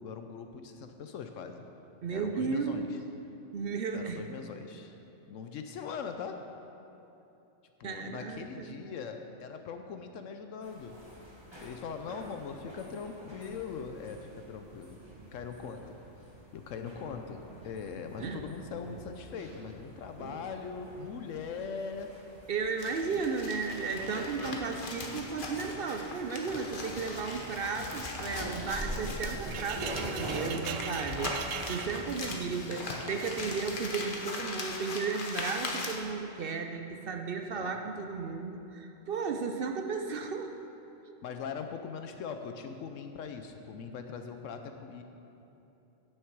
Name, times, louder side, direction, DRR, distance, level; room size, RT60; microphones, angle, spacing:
voice 1, 0.0-1.6 2.1-3.0 3.9-5.0 5.3-6.5 7.8-11.0 11.6-15.0 15.3-16.1 16.5-22.1 23.1-23.3 27.8-28.0 32.4-32.6 37.6-37.8 41.2-45.0, left 6 dB, 80° left, 6 dB, 1.0 m, -41 dB
voice 2, 2.0-3.0 3.5-4.3 7.8-8.8 18.2-18.4 22.5-40.6, right 5 dB, 55° right, 5 dB, 0.7 m, -34 dB
sound 1, 10.6-30.5, right 1 dB, 20° right, 1.8 m, -45 dB
sound 2, 22.8-36.0, left 3 dB, 45° left, 1.0 m, -40 dB
sound 3, 27.1-32.7 33.0-34.2 34.8-35.1, right 7 dB, 80° right, 1.0 m, -42 dB
16.0 x 6.5 x 4.7 m, 2.9 s
omnidirectional pair, 1.3 m